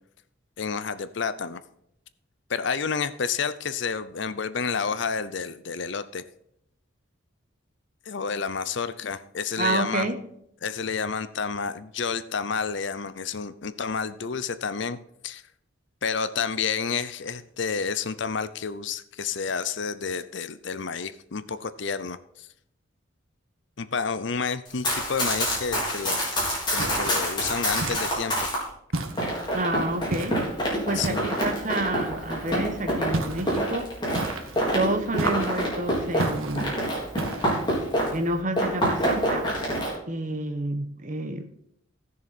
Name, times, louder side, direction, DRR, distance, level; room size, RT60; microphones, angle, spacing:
voice 1, 0.6-1.6 2.5-6.2 8.1-10.1 10.6-15.0 15.2-15.4 16.0-22.5 23.8-26.2 26.7-28.3 30.9-31.3, left 5 dB, 60° left, 14 dB, 0.6 m, -30 dB
voice 2, 9.6-10.2 29.5-30.4 30.9-33.9 34.7-36.8 38.1-39.5 40.1-41.5, right 2 dB, 40° right, 8 dB, 1.2 m, -29 dB
Run, 24.7-28.6 29.2-38.3 38.5-39.9, equal, 20° left, 4.0 m, -27 dB
sound 1, 26.8-27.3 27.8-28.4 28.9-29.6 30.1-30.5 31.0-31.6 33.1-33.6 34.1-34.7 35.2-35.7 36.2-36.7 37.2-37.7, right 2 dB, 90° right, 1.6 m, -32 dB
15.5 x 6.9 x 4.3 m, 0.73 s
head